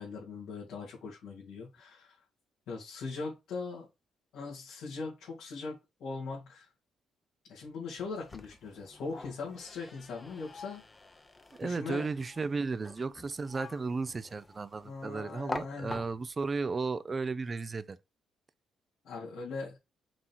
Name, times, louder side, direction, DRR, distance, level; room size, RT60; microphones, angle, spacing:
voice 1, 0.0-2.2 2.7-3.9 4.3-6.7 7.5-10.8 11.6-12.1 14.8-16.0 19.0-19.8, left 4 dB, 80° left, 2.9 m, -40 dB
sound 1, 8.0-16.5, left 3 dB, 25° left, 0.9 m, -46 dB
voice 2, 11.6-18.0, right 4 dB, 30° right, 0.6 m, -34 dB
6.0 x 3.8 x 4.7 m
cardioid pair, 90°, 0 cm